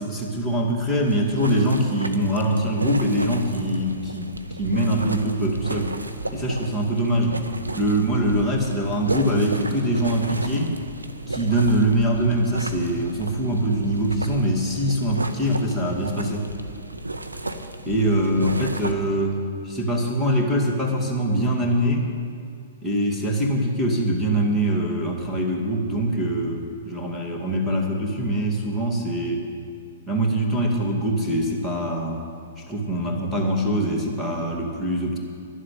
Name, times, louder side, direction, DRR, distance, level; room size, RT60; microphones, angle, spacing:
voice 1, 0.0-4.3 4.6-5.9 6.3-7.4 7.7-10.8 11.3-16.5 17.9-22.1 22.8-29.4 30.1-32.2 32.7-35.2, right 1 dB, ahead, -5 dB, 2.4 m, -23 dB
sound 1, 1.1-18.9, right 2 dB, 90° right, 0.8 m, -33 dB
11.5 x 7.5 x 9.9 m, 2.4 s
figure-of-eight pair, 110°, 0 cm